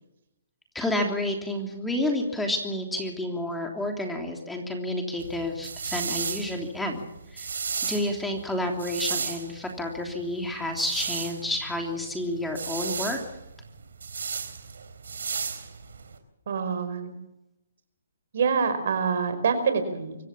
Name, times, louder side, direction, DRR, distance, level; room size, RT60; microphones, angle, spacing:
voice 1, 0.7-7.0 7.3-7.5 7.8-13.2, left 1 dB, 5° left, 2 dB, 3.2 m, -30 dB
sound 1, 5.2-16.2, right 5 dB, 75° right, 3.8 m, -34 dB
voice 2, 16.5-17.1 18.3-20.2, right 6 dB, 60° right, 9 dB, 5.2 m, -26 dB
25.0 x 16.0 x 7.3 m, 0.88 s
hypercardioid pair, 145°, 0 cm